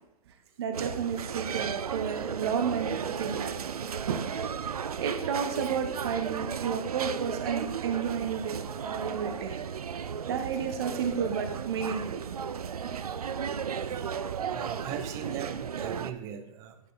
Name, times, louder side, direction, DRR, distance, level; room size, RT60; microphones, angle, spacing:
voice 1, 0.6-3.6 4.1-4.3 5.0-9.6 10.3-12.2, right 6 dB, 45° right, 7 dB, 0.9 m, -32 dB
lunchroom cycle, 0.7-16.1, right 7 dB, 90° right, 0.5 m, -34 dB
voice 2, 14.5-16.9, right 9 dB, 15° right, 10 dB, 0.5 m, -39 dB
11.0 x 4.9 x 3.9 m, 0.90 s
hypercardioid pair, 150°, 19 cm